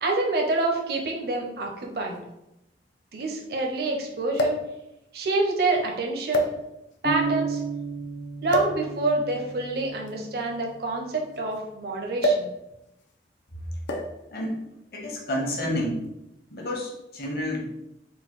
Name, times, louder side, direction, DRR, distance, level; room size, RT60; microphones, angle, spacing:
voice 1, 0.0-2.2 3.1-4.6 5.1-6.5 7.0-7.6 8.4-12.5, right 2 dB, 60° right, 1 dB, 0.6 m, -27 dB
sound 1, 0.6-0.7 1.8-1.9 2.2-2.3 4.3-4.7 5.6-5.8 6.3-7.0 8.5-8.8 10.0-11.6 12.2-12.6 12.8-13.1 13.9-14.3 15.2-15.5, equal, 85° left, 0.6 m, -27 dB
sound 2, 7.0-10.8, right 5 dB, 25° left, 0.5 m, -33 dB
voice 2, 14.9-16.0 16.5-17.6, left 1 dB, 55° left, -2 dB, 1.0 m, -29 dB
3.8 x 2.2 x 4.5 m, 0.88 s
head